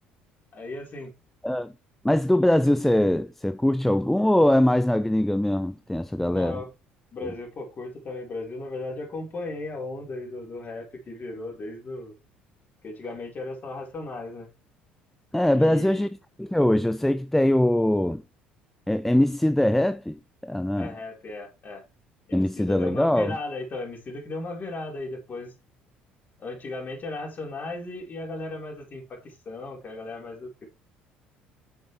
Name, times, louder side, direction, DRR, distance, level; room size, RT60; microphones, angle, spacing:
voice 1, 0.5-1.1 6.3-6.7 7.1-12.1 12.8-14.5 15.5-16.1 20.8-21.8 22.3-25.5 26.4-30.7, left 2 dB, 40° left, 4.4 m, -36 dB
voice 2, 2.0-6.6 7.2-7.3 15.3-16.1 16.4-18.2 18.9-20.9 22.3-23.4, left 1 dB, 5° left, 0.5 m, -22 dB
8.3 x 6.5 x 3.3 m
figure-of-eight pair, 55°, 5 cm